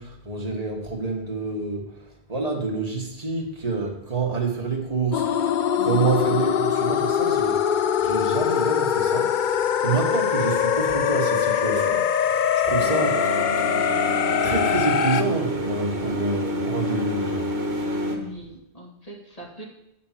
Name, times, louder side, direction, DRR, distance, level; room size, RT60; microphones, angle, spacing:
voice 1, 0.0-13.3 14.4-17.8, right 4 dB, 35° right, 0 dB, 1.8 m, -28 dB
sound 1, 5.1-15.2, left 8 dB, 55° left, 0.6 m, -22 dB
voice 2, 5.8-6.1 18.1-19.6, right 1 dB, 35° left, -2 dB, 2.1 m, -39 dB
sound 2, 12.8-18.2, right 1 dB, 60° right, 2.0 m, -28 dB
10.0 x 4.4 x 7.5 m, 0.84 s
omnidirectional pair, 1.1 m